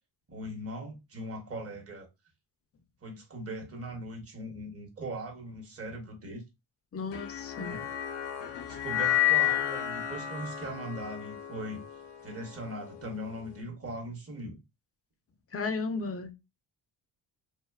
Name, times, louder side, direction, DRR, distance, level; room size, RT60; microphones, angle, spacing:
voice 1, 0.3-2.1 3.0-6.4 7.6-7.9 8.7-11.8 12.2-14.6, right 1 dB, 35° right, 0.9 m, -40 dB
voice 2, 6.9-7.8 15.5-16.3, left 4 dB, 35° left, 0.4 m, -34 dB
sound 1, 7.1-13.5, left 12 dB, 85° left, 0.6 m, -31 dB
2.6 x 2.2 x 2.2 m
cardioid pair, 100°, 41 cm